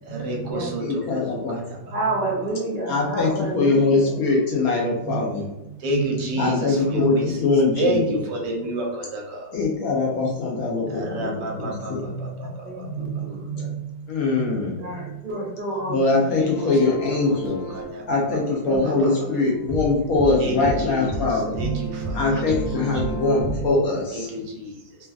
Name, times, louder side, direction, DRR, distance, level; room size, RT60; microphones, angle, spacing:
voice 1, 0.0-1.2 5.8-6.6 6.9-7.3 7.8-9.5 10.9-13.8 14.3-14.5 15.0-15.2 16.4-16.5 17.3-17.4 17.7-18.0 18.8-19.1 20.4-20.6 20.9-21.0 21.6-22.4 24.1-24.7, right 2 dB, 70° right, -1 dB, 1.3 m, -28 dB
voice 2, 0.8-1.6 2.9-5.4 6.4-8.2 9.5-12.0 14.1-14.8 15.9-17.6 18.1-21.6 22.1-24.3, left 3 dB, 70° left, -2 dB, 0.9 m, -22 dB
voice 3, 1.9-4.2 6.3-6.5 11.3-11.5 12.6-13.7 14.8-16.5 18.6-19.1 22.3-22.4 22.7-23.0, right 2 dB, 50° right, -8 dB, 0.5 m, -30 dB
sound 1, 16.5-23.7, right 2 dB, 10° left, 1.1 m, -32 dB
3.1 x 2.3 x 2.3 m, 0.91 s
omnidirectional pair, 2.1 m